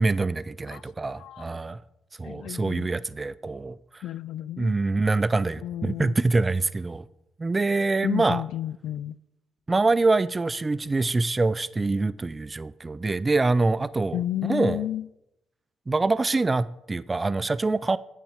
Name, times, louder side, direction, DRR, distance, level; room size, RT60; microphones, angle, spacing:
voice 1, 0.0-1.8 2.2-4.0 4.6-7.1 7.4-8.4 9.7-14.8 15.9-18.0, right 3 dB, 25° right, 0.3 m, -25 dB
voice 2, 0.7-1.4 2.2-2.9 4.0-4.8 5.6-6.2 8.0-9.2 14.1-15.1, left 13 dB, 80° left, 0.3 m, -32 dB
9.4 x 8.9 x 5.0 m
cardioid pair, 90°, 0 cm